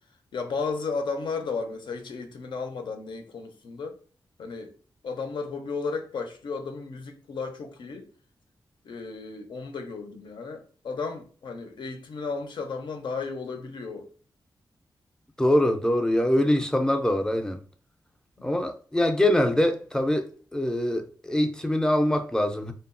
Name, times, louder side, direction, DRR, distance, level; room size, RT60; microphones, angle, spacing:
voice 1, 0.3-4.0 4.4-4.8 5.0-8.1 8.8-14.1 18.4-18.7, left 4 dB, 75° left, 0.5 m, -34 dB
voice 2, 15.4-17.6 18.4-22.7, left 1 dB, 10° left, 0.4 m, -24 dB
2.8 x 2.2 x 2.4 m
cardioid pair, 85°, 8 cm